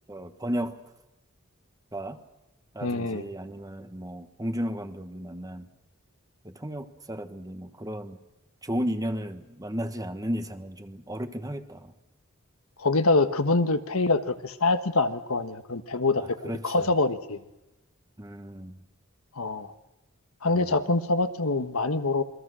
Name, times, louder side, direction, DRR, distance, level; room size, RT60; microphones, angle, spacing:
voice 1, 0.1-0.7 1.9-2.2 2.7-5.7 6.4-8.2 8.6-11.9 16.2-16.9 18.2-18.8 20.6-20.8, equal, 15° right, 9 dB, 1.4 m, -34 dB
voice 2, 2.8-3.3 12.8-17.4 19.4-19.7 20.4-22.2, left 3 dB, 85° left, 9 dB, 1.4 m, -25 dB
27.5 x 22.5 x 6.4 m, 0.96 s
head